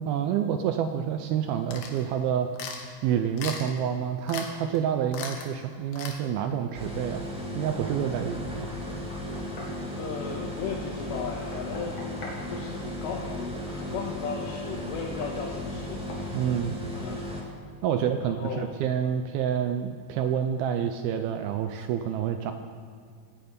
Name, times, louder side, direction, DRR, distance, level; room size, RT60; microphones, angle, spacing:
voice 1, 0.0-2.5 3.0-7.3 7.6-8.7 16.3-16.8 17.8-22.5, right 9 dB, 80° right, 7 dB, 2.2 m, -28 dB
sound 1, 1.7-2.0 2.6-2.8 3.4-3.8 4.3-4.5 4.7-4.8 5.1-5.5 5.9-6.2, left 6 dB, 70° left, 3.2 m, -37 dB
sound 2, 6.7-17.4, left 1 dB, 5° right, 1.0 m, -35 dB
Knock, 8.6-9.8 11.3-12.5 14.5-14.6 15.2-15.4 16.1-16.3, left 2 dB, 40° left, 2.9 m, -43 dB
voice 2, 9.9-12.0 12.5-16.6 16.9-17.3 17.9-18.7, left 6 dB, 90° left, -2 dB, 3.5 m, -36 dB
12.5 x 10.5 x 8.8 m, 2.1 s
omnidirectional pair, 5.0 m